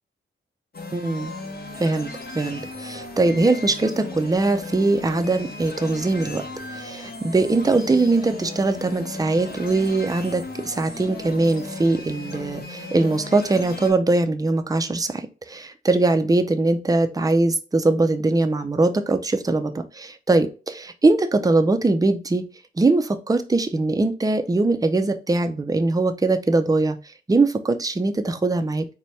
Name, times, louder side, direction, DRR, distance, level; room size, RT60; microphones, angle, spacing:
sound 1, 0.7-13.9, left 2 dB, 45° left, 1.0 m, -36 dB
voice 1, 0.9-1.3 1.8-2.1 2.3-6.4 6.7-22.4 22.8-27.0 27.3-28.9, right 2 dB, 15° right, 7 dB, 0.5 m, -21 dB
4.1 x 2.2 x 3.2 m, 0.33 s
cardioid pair, 60°, 21 cm